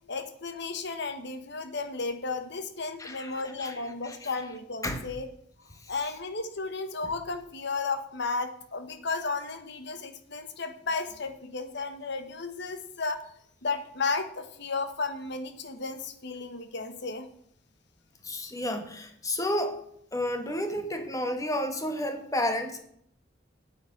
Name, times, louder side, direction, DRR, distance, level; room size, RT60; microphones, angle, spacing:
voice 1, 0.1-5.3 5.9-13.2 13.6-17.3, left 4 dB, 60° left, 8 dB, 1.3 m, -33 dB
voice 2, 3.0-4.3 4.8-5.1 5.7-5.9 18.2-19.8 20.1-22.8, left 1 dB, 15° left, 6 dB, 1.4 m, -32 dB
8.9 x 8.2 x 5.9 m, 0.69 s
head